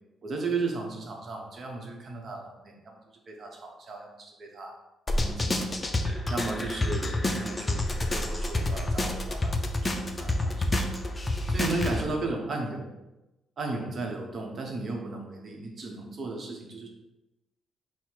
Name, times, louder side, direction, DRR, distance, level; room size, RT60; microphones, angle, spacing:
voice 1, 0.2-3.0 3.3-4.7 5.1-5.7 6.3-9.9 10.2-10.8 11.5-12.9 13.6-16.9, right 3 dB, 50° right, 1 dB, 0.9 m, -35 dB
sound 1, 5.1-12.0, left 1 dB, 20° left, 0.5 m, -28 dB
4.2 x 2.1 x 4.6 m, 0.99 s
cardioid pair, 100°, 0 cm